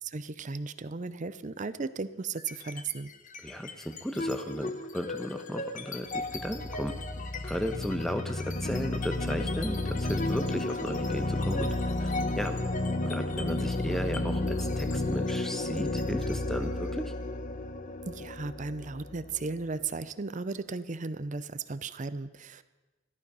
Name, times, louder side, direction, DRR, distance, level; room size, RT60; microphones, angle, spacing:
voice 1, 0.0-3.1 18.0-22.6, right 4 dB, 40° right, 14 dB, 0.6 m, -35 dB
sound 1, 2.4-2.9 3.3-19.9, left 2 dB, 40° left, 0.9 m, -32 dB
voice 2, 3.4-6.9 7.4-11.7 12.0-12.6 13.1-17.1, equal, ahead, 7 dB, 1.0 m, -35 dB
14.0 x 12.0 x 5.5 m, 1.2 s
head